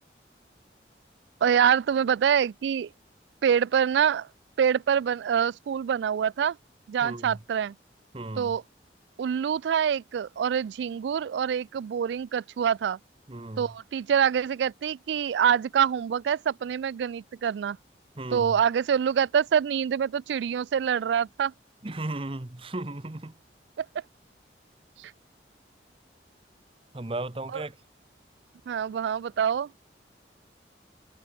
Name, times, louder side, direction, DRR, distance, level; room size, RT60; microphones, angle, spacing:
voice 1, 1.4-2.9 3.4-4.3 4.6-6.6 6.9-7.7 8.4-8.6 9.2-13.0 13.6-17.8 18.3-21.5 23.8-23.9 25.0-25.1 27.5-27.6 28.7-29.7, right 8 dB, 75° right, 0.3 m, -25 dB
voice 2, 7.0-7.4 8.1-8.6 13.3-13.7 18.2-18.6 21.8-23.3 26.9-27.8, right 2 dB, 30° right, 0.9 m, -35 dB
head